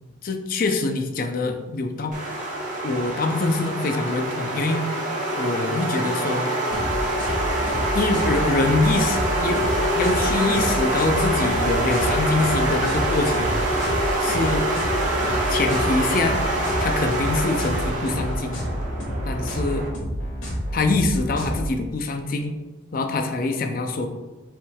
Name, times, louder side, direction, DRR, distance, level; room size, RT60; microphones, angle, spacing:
voice 1, 0.2-2.1 2.8-5.1 5.4-6.5 7.9-9.6 9.9-13.6 14.2-14.7 15.5-16.4 16.8-18.7 19.3-19.9 20.7-22.5 22.9-24.1, left 3 dB, 45° left, 5 dB, 0.4 m, -24 dB
sound 1, 2.1-19.9, right 1 dB, 40° right, 0.8 m, -25 dB
sound 2, 5.8-10.6, right 1 dB, 10° left, 1.2 m, -35 dB
sound 3, 6.7-21.7, equal, 75° left, 1.3 m, -29 dB
5.4 x 3.6 x 2.3 m, 1.2 s
head